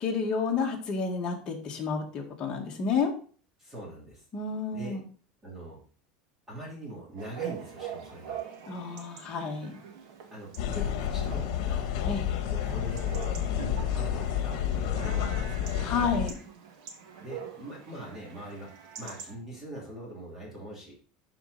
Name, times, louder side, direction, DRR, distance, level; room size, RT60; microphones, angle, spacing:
voice 1, 0.0-3.1 4.3-5.0 8.7-9.8 12.1-12.2 15.8-16.3, left 5 dB, 25° left, 0 dB, 1.8 m, -30 dB
voice 2, 3.6-4.2 4.7-5.0 5.4-5.8 6.5-8.4 10.3-11.9 12.5-15.9 17.2-20.9, right 1 dB, 10° right, -4 dB, 2.9 m, -42 dB
Chatter / Bark / Livestock farm animals working animals, 7.2-19.3, right 8 dB, 75° right, 2.0 m, -44 dB
sound 1, 10.6-16.3, left 9 dB, 65° left, 1.3 m, -30 dB
11.5 x 4.5 x 4.1 m, 0.43 s
cardioid pair, 170°, 3 cm